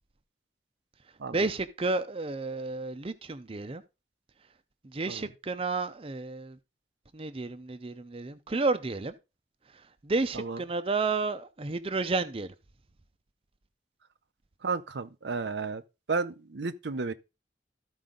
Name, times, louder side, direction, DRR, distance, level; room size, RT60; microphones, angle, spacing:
voice 1, 1.3-3.8 4.8-6.6 7.1-9.1 10.0-12.5, right 3 dB, 35° right, 0.6 m, -31 dB
voice 2, 14.6-15.8 16.1-17.1, right 4 dB, 80° right, 0.7 m, -32 dB
13.5 x 4.8 x 3.8 m
head